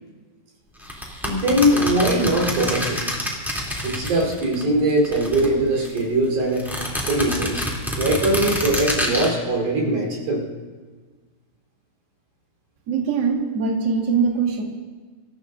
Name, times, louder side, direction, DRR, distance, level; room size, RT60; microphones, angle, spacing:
sound 1, 0.8-4.6 4.9-6.0 6.5-9.3, equal, ahead, 2.1 m, -27 dB
voice 1, 1.2-3.0 3.8-6.7 7.1-7.6 8.0-10.4, right 1 dB, 85° right, -2 dB, 5.8 m, -21 dB
voice 2, 12.9-14.6, right 5 dB, 40° right, 0 dB, 1.9 m, -22 dB
26.5 x 15.0 x 2.6 m, 1.4 s
omnidirectional pair, 4.2 m